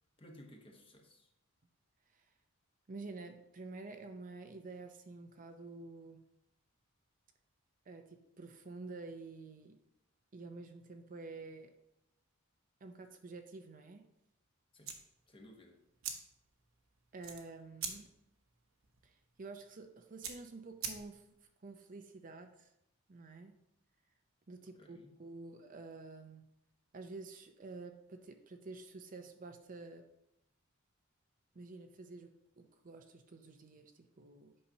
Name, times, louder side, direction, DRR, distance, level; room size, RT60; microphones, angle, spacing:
voice 1, 0.2-1.3 14.7-14.9 15.3-15.8 24.8-25.2, equal, 25° left, 2 dB, 1.1 m, -57 dB
voice 2, 2.9-6.3 7.9-9.8 10.3-11.7 12.8-14.1 17.1-18.1 19.0-21.2 21.6-22.7 23.1-23.6 24.5-26.5 26.9-30.1 31.5-34.6, right 3 dB, 40° right, 6 dB, 0.6 m, -49 dB
sound 1, 14.8-21.4, right 7 dB, 70° right, 1.0 m, -47 dB
8.6 x 5.6 x 2.8 m, 0.84 s
head